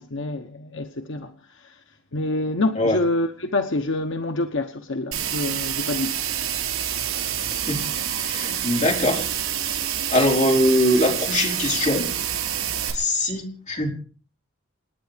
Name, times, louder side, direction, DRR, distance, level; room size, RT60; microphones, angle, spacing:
voice 1, 0.0-6.2, left 2 dB, 65° left, 1.0 m, -27 dB
sound 1, 5.1-12.9, right 10 dB, 90° right, 5.4 m, -27 dB
voice 2, 7.5-7.8 8.2-9.3 10.1-12.1 12.9-13.9, left 1 dB, 35° left, 4.7 m, -22 dB
28.0 x 9.6 x 5.1 m
head